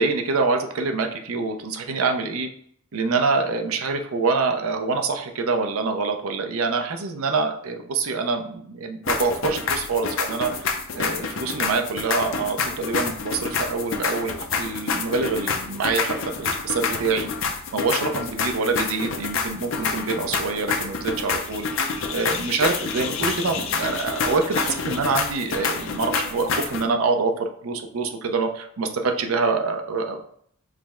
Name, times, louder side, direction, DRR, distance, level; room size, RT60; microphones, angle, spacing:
voice 1, 0.0-2.5 2.9-10.7 10.9-17.3 17.7-27.3 27.6-30.2, right 4 dB, 85° right, 5 dB, 0.6 m, -25 dB
sound 1, 9.1-26.8, left 5 dB, 65° left, 0.6 m, -28 dB
4.9 x 2.1 x 3.6 m, 0.63 s
head